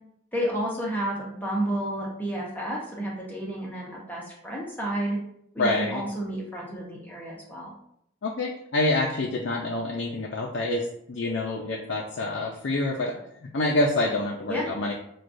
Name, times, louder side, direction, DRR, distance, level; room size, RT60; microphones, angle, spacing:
voice 1, 0.3-5.2 5.5-7.7 14.5-14.7, right 1 dB, 10° left, -4 dB, 0.7 m, -31 dB
voice 2, 5.6-6.0 8.2-14.9, left 2 dB, 70° left, -1 dB, 0.5 m, -27 dB
6.0 x 2.3 x 2.5 m, 0.75 s
head